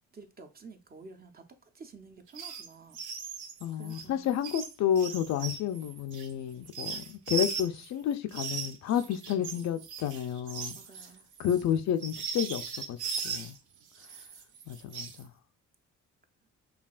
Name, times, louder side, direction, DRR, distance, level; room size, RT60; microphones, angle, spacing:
voice 1, 0.1-3.0 3.7-4.3 10.7-11.2, right 4 dB, 30° right, 0.6 m, -50 dB
sound 1, 2.3-2.7 2.9-7.9 8.3-13.6 13.9-15.2, right 6 dB, 85° right, 0.7 m, -38 dB
voice 2, 3.6-10.8 11.4-12.6 12.9-13.0 13.2-13.6 14.7-15.3, left 9 dB, 65° left, 0.5 m, -30 dB
5.6 x 2.3 x 2.4 m
cardioid pair, 90°, 30 cm